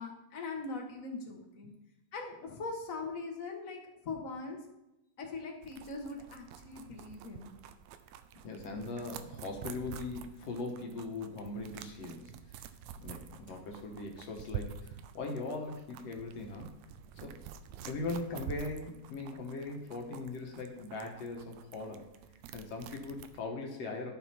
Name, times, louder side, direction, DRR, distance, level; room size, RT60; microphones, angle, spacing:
voice 1, 0.0-1.7 2.1-4.6 5.2-7.5, left 3 dB, 45° left, 1 dB, 1.0 m, -41 dB
sound 1, 5.6-23.4, right 9 dB, 80° right, 2.0 m, -48 dB
voice 2, 8.4-12.3 13.0-16.7 17.2-17.4 17.8-22.1 22.5-24.1, left 3 dB, 65° left, 2 dB, 2.1 m, -40 dB
12.0 x 6.2 x 4.3 m, 0.90 s
omnidirectional pair, 3.4 m